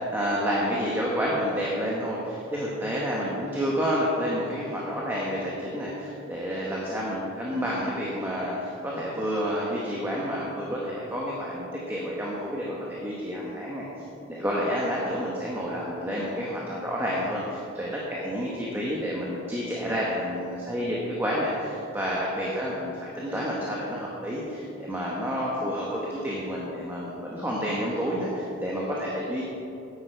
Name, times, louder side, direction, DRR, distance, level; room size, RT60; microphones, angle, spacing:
voice 1, 0.1-13.9 14.3-29.4, equal, 10° right, -5 dB, 1.0 m, -29 dB
9.7 x 8.9 x 4.5 m, 2.9 s
head